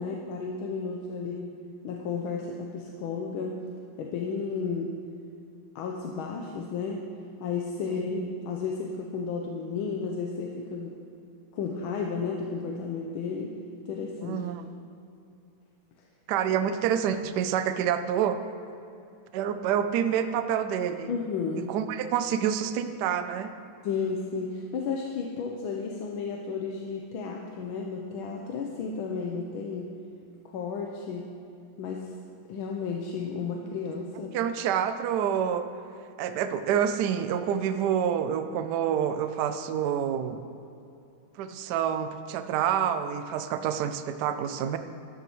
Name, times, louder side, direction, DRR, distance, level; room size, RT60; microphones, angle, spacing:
voice 1, 0.0-1.5 1.8-3.6 4.0-4.9 5.7-7.1 7.4-11.0 11.5-13.6 13.9-14.4 21.1-21.7 23.8-29.9 30.4-31.3 31.8-32.1 32.5-34.4, left 5 dB, 85° left, 1 dB, 1.6 m, -33 dB
voice 2, 14.2-14.6 16.3-18.4 19.3-21.1 21.7-23.5 34.3-35.7 36.2-40.4 41.4-44.8, right 9 dB, 70° right, 9 dB, 1.0 m, -27 dB
13.5 x 11.5 x 3.0 m, 2.7 s
omnidirectional pair, 2.2 m